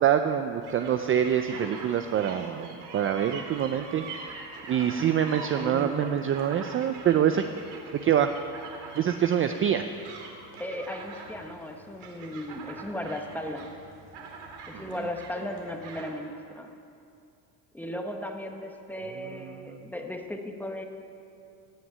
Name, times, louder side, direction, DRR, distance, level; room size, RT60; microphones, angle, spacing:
voice 1, 0.0-4.0 4.7-7.4 8.0-8.3 9.0-9.9 14.7-14.8 19.6-19.8, right 9 dB, 30° right, 8 dB, 0.4 m, -25 dB
sound 1, 0.6-16.1, right 4 dB, 70° right, 2.6 m, -44 dB
voice 2, 5.5-6.2 10.6-13.7 14.7-16.7 17.7-20.8, left 1 dB, 5° left, 3 dB, 0.9 m, -36 dB
17.0 x 6.2 x 9.4 m, 2.6 s
cardioid pair, 150°, 42 cm